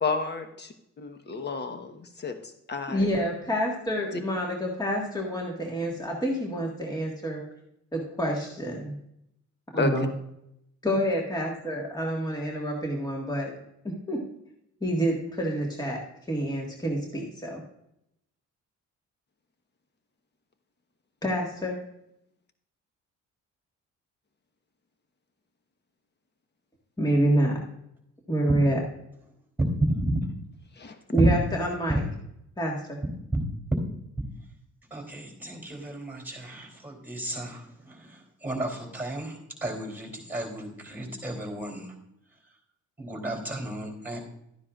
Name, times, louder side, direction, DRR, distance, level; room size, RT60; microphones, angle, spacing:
voice 1, 0.0-0.7 1.0-3.1 4.1-4.2 9.7-10.1 30.8-31.0, left 4 dB, 35° left, 7 dB, 1.2 m, -31 dB
voice 2, 2.9-7.4 7.9-9.0 9.7-10.1 10.8-13.5 13.8-14.2 14.8-16.0 16.3-17.6 21.2-21.8 27.0-27.6 28.3-28.8 31.1-32.0 32.6-33.0, right 1 dB, 15° left, -1 dB, 1.7 m, -27 dB
voice 3, 34.9-41.9 43.0-44.2, right 1 dB, 5° right, 2 dB, 3.3 m, -32 dB
12.5 x 9.8 x 2.5 m, 0.79 s
cardioid pair, 90°, 30 cm